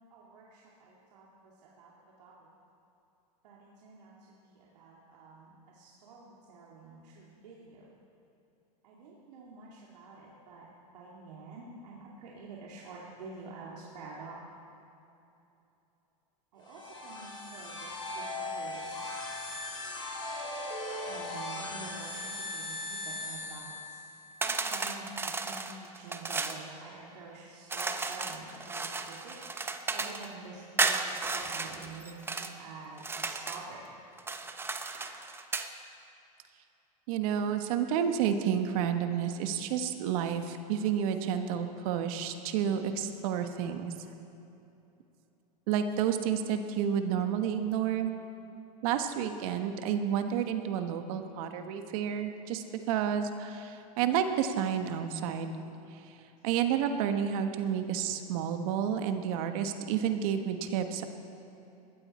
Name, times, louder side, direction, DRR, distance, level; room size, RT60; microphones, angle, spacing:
voice 1, 0.1-1.9 2.2-2.3 3.4-4.1 4.4-7.9 8.8-10.7 10.9-14.4 16.5-19.3 21.0-24.0 24.4-29.3 29.9-33.8 34.9-35.0, right 3 dB, 75° right, -4 dB, 2.6 m, -48 dB
sound 1, 16.6-24.3, left 2 dB, 20° left, 3.6 m, -39 dB
sound 2, 24.4-26.6 27.7-30.3 30.8-32.5 33.0-33.7 34.2-35.7, right 3 dB, 10° right, 0.9 m, -34 dB
voice 2, 37.1-43.9 45.7-48.1 48.8-55.6 55.9-56.0 56.4-61.0, right 8 dB, 60° right, 7 dB, 1.4 m, -30 dB
21.0 x 15.5 x 4.4 m, 2.9 s
hypercardioid pair, 120°, 21 cm